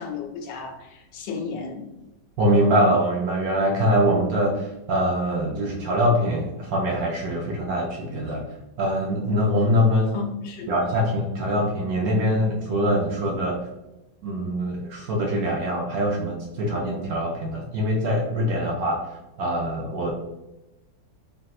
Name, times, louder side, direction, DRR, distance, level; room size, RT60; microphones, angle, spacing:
voice 1, 0.0-1.8 10.1-10.7, left 5 dB, 80° left, 1 dB, 1.2 m, -33 dB
voice 2, 2.4-8.5 8.8-10.2 10.7-13.6 14.2-20.1, equal, 70° right, -1 dB, 0.9 m, -23 dB
3.4 x 2.6 x 2.3 m, 0.98 s
omnidirectional pair, 1.9 m